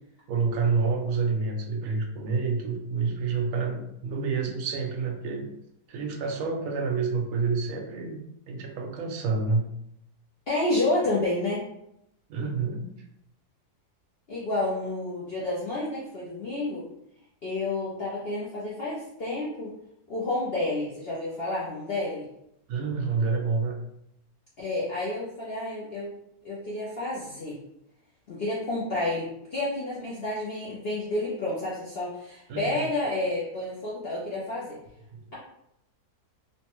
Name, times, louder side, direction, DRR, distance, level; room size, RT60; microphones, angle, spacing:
voice 1, 0.3-5.5 5.9-8.2 8.5-9.7 12.3-12.9 22.7-23.8 32.5-32.9 35.1-35.2, right 4 dB, 70° right, 2 dB, 0.9 m, -28 dB
voice 2, 10.5-11.6 14.3-16.9 17.4-19.7 20.1-22.3 24.6-26.1 26.4-27.6 28.3-34.8, left 2 dB, 55° left, -7 dB, 0.7 m, -30 dB
3.1 x 2.2 x 3.0 m, 0.78 s
omnidirectional pair, 1.7 m